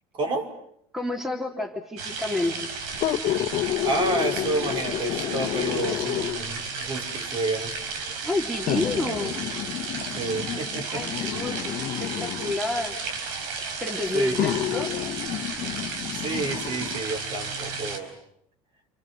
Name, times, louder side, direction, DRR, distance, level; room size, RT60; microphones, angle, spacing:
voice 1, 0.1-0.5 3.8-7.7 10.1-11.4 14.1-14.3 16.1-18.1, right 3 dB, 45° right, 3 dB, 5.8 m, -30 dB
voice 2, 0.9-2.5 8.2-9.4 10.9-13.0 13.8-15.1, left 2 dB, ahead, 1 dB, 3.3 m, -29 dB
sound 1, 2.0-18.0, right 4 dB, 80° right, 4.8 m, -33 dB
sound 2, 2.9-6.6 7.5-7.6 8.7-12.6 13.6-13.7 14.3-17.0 17.5-17.6, left 13 dB, 60° left, 1.5 m, -30 dB
29.5 x 25.0 x 7.9 m, 0.72 s
supercardioid pair, 110°, 12 cm